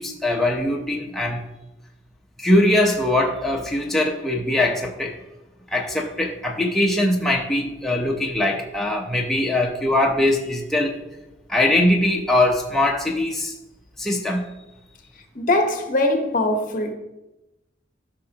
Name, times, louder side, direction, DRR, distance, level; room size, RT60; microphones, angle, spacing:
voice 1, 0.0-1.4 2.4-5.2 5.7-10.9 11.5-13.5 14.0-14.5, left 1 dB, ahead, 0.8 m, -21 dB
voice 2, 15.3-16.9, left 1 dB, 45° left, 1.0 m, -21 dB
13.5 x 5.8 x 2.9 m
head